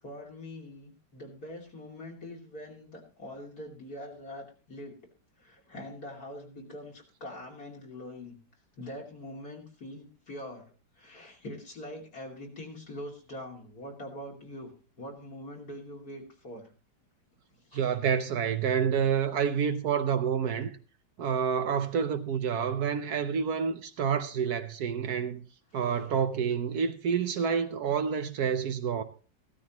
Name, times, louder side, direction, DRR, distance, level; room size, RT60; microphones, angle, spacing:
voice 1, 0.0-5.0 5.4-8.4 8.8-16.7 17.7-17.9 26.0-26.1, left 1 dB, 60° left, 3.3 m, -43 dB
voice 2, 17.7-20.7 21.2-25.4 25.7-29.0, right 7 dB, 65° right, 1.2 m, -28 dB
15.5 x 12.5 x 3.0 m
omnidirectional pair, 1.9 m